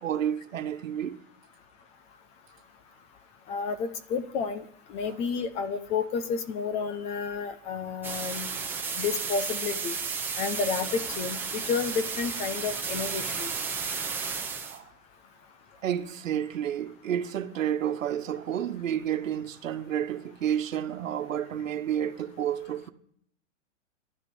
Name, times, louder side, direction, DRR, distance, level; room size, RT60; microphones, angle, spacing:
voice 1, 0.0-1.2 14.6-14.8 15.8-22.9, right 10 dB, 85° right, 1.3 m, -30 dB
voice 2, 3.5-4.6 4.9-8.5 9.0-10.0 10.4-13.5, left 5 dB, 15° left, 0.6 m, -31 dB
sound 1, 8.0-14.8, right 5 dB, 5° right, 1.3 m, -33 dB
13.5 x 11.0 x 8.3 m
hypercardioid pair, 160°, 38 cm